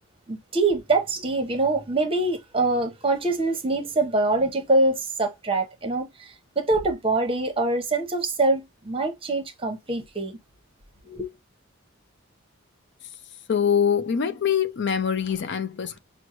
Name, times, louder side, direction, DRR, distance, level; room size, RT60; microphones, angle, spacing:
voice 1, 0.3-10.4 11.1-11.3, right 2 dB, 25° right, 0.9 m, -24 dB
voice 2, 13.5-16.0, left 7 dB, 55° left, 0.5 m, -24 dB
6.1 x 2.1 x 3.0 m
head